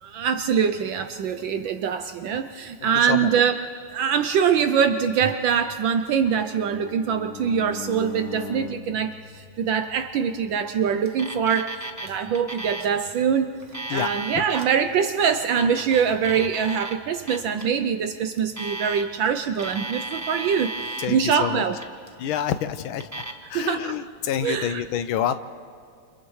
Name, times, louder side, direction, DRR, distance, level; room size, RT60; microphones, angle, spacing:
voice 1, 0.0-3.6 3.9-9.1 9.6-13.5 13.9-20.7 21.1-21.8 23.5-24.0 24.4-24.8, right 7 dB, 70° right, 8 dB, 1.3 m, -23 dB
voice 2, 2.8-3.3 12.2-12.3 13.9-14.1 21.0-21.6 22.2-23.2 23.5-25.3, left 9 dB, 75° left, 11 dB, 1.5 m, -28 dB
Bowed string instrument, 6.1-10.3, left 5 dB, 55° left, 1.0 m, -39 dB
Alarm, 11.1-12.1 12.3-12.9 13.6-14.7 15.5-16.9 17.3-17.6 18.4-19.3 19.5-21.1 21.6-22.1 22.9-23.3, right 2 dB, 10° right, 0.8 m, -34 dB
29.5 x 28.0 x 3.2 m, 2.2 s
omnidirectional pair, 2.4 m